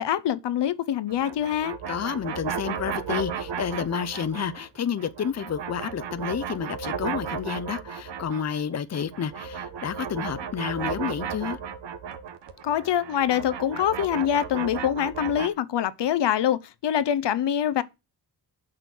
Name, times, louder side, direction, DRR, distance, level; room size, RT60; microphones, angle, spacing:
voice 1, 0.0-1.8 12.6-17.8, left 10 dB, 75° left, 0.8 m, -25 dB
sound 1, 1.1-4.7 5.0-8.6 8.9-15.5, right 7 dB, 80° right, 1.4 m, -34 dB
voice 2, 1.9-11.6, left 7 dB, 40° left, 0.7 m, -30 dB
8.8 x 6.3 x 7.6 m
wide cardioid pair, 180°, 42 cm